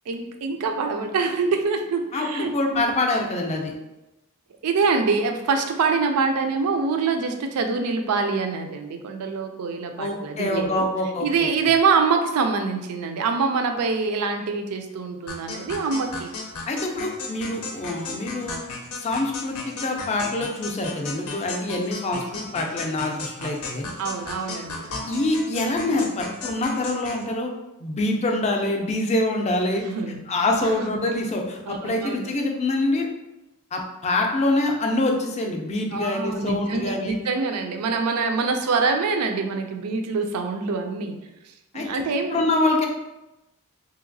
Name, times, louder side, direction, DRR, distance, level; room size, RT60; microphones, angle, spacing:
voice 1, 0.1-2.8 4.6-10.9 11.2-16.3 23.4-23.5 24.0-25.1 29.9-30.2 30.6-30.8 31.7-32.3 35.9-41.2 41.7-42.4, right 4 dB, 80° right, 5 dB, 0.4 m, -25 dB
voice 2, 2.1-3.7 10.0-11.5 16.7-18.6 19.0-23.9 25.1-27.5 27.8-29.8 30.3-33.1 33.7-37.2 41.7-41.9 42.3-42.9, left 2 dB, 30° left, 2 dB, 0.4 m, -25 dB
sound 1, 15.3-27.2, left 3 dB, 90° left, 0.6 m, -35 dB
3.1 x 2.8 x 2.6 m, 0.96 s
head